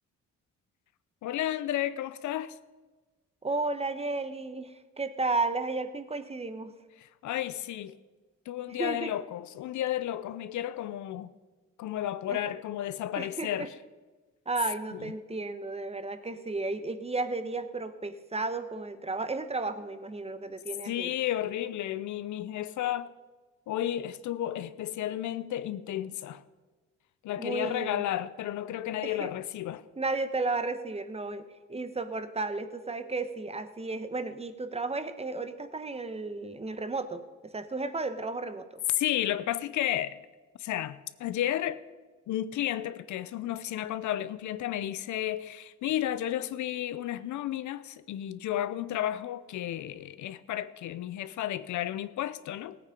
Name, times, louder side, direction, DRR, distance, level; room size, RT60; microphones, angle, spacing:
voice 1, 1.2-2.6 7.0-8.0 8.5-11.3 11.8-13.7 14.9-15.0 20.9-23.1 23.7-26.4 27.2-29.8 39.0-40.2 40.6-41.8 42.3-52.8, left 12 dB, 75° left, 0.7 m, -32 dB
voice 2, 3.4-6.7 8.7-9.1 12.3-12.4 13.2-13.7 14.5-21.1 27.4-28.0 29.0-29.3 30.0-38.8, right 3 dB, 20° right, 1.0 m, -33 dB
16.5 x 8.9 x 5.3 m
cardioid pair, 90°, 30 cm